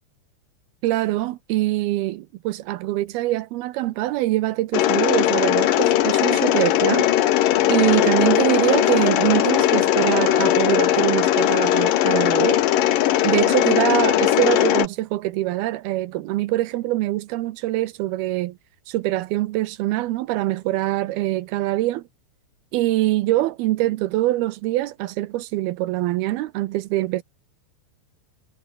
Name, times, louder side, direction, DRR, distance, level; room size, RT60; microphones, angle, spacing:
voice 1, 0.8-7.1 7.4-12.6 13.2-18.6 18.9-22.0 22.7-27.2, right 16 dB, 80° right, 2.4 m, -24 dB
Mechanisms, 4.7-14.9, left 13 dB, 65° left, 2.5 m, -19 dB
omnidirectional pair, 5.1 m